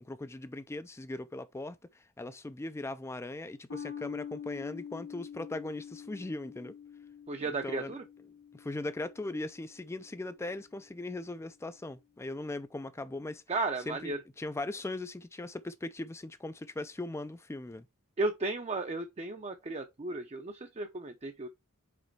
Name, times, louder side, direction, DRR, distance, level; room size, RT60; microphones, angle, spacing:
voice 1, 0.0-6.8 7.5-7.9 8.5-13.4 13.9-17.9, left 2 dB, 10° left, 0.3 m, -39 dB
sound 1, 3.7-10.4, left 8 dB, 65° left, 1.2 m, -46 dB
voice 2, 7.3-8.0 13.5-14.2 18.2-21.5, right 3 dB, 30° right, 0.6 m, -34 dB
5.1 x 4.1 x 4.5 m
head